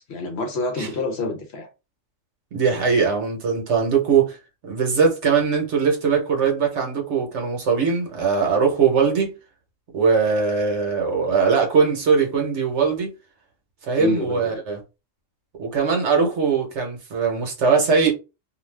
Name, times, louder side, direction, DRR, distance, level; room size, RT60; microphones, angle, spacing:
voice 1, 0.1-1.7 14.0-14.6, left 2 dB, 60° left, 0.8 m, -27 dB
voice 2, 2.5-4.4 4.6-9.3 9.9-13.1 13.9-14.8 15.6-18.1, right 5 dB, 65° right, 1.1 m, -20 dB
2.5 x 2.3 x 3.2 m
omnidirectional pair, 1.4 m